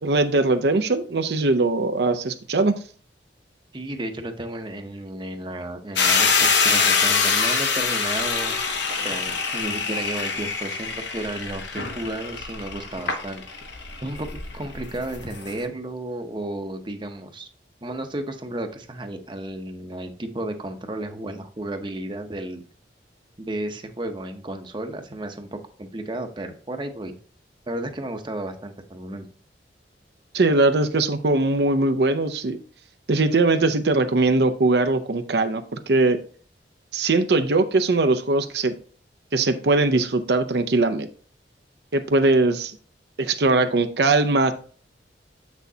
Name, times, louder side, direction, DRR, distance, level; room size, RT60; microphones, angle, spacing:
voice 1, 0.0-2.8 30.3-32.6 33.1-36.2 36.9-38.7 39.3-41.1 41.9-42.8 43.2-44.5, right 2 dB, 65° right, 8 dB, 0.6 m, -20 dB
voice 2, 3.7-6.3 6.6-8.6 9.0-13.4 14.0-17.5 17.8-22.6 23.4-27.1 27.7-29.3, right 1 dB, 25° right, 6 dB, 0.8 m, -33 dB
sound 1, 6.0-15.6, left 5 dB, 75° left, 1.1 m, -24 dB
8.0 x 6.2 x 2.8 m, 0.42 s
head